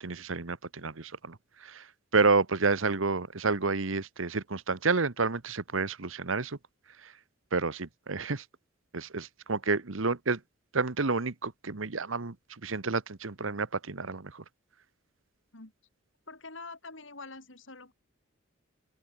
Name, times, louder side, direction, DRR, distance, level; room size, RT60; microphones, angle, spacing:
voice 1, 0.0-1.9 2.1-6.6 7.0-7.1 7.5-8.4 8.9-10.4 10.7-12.3 12.6-14.4, right 4 dB, 75° right, 1.2 m, -30 dB
voice 2, 16.3-17.9, left 3 dB, 65° left, 5.0 m, -45 dB
open air
head